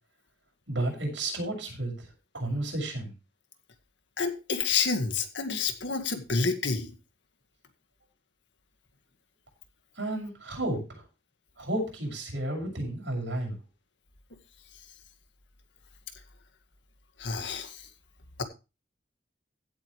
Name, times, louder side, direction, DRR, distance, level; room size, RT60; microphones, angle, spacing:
voice 1, 0.7-2.1 2.3-3.1 10.0-11.0 11.6-13.5, right 1 dB, 80° right, 0 dB, 6.8 m, -32 dB
voice 2, 4.2-6.9 17.2-17.9 18.4-18.5, left 5 dB, 75° left, 7 dB, 1.9 m, -29 dB
16.0 x 8.0 x 3.3 m, 0.29 s
head